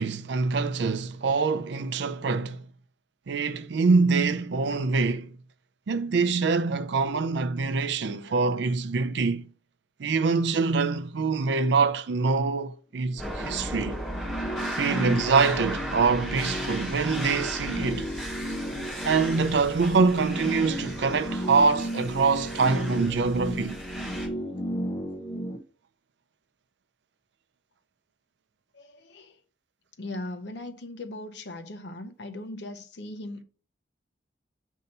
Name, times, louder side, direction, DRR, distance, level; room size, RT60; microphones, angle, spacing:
voice 1, 0.0-2.6 3.3-5.3 5.9-9.5 10.0-14.0 14.7-18.1 19.0-23.8, right 4 dB, 70° right, 0.4 m, -25 dB
sound 1, 13.1-25.6, equal, 25° left, 0.6 m, -34 dB
sound 2, 13.2-24.3, equal, ahead, 3.2 m, -36 dB
voice 2, 28.7-29.3 30.0-33.4, left 2 dB, 70° left, 0.7 m, -39 dB
6.5 x 2.7 x 5.4 m
head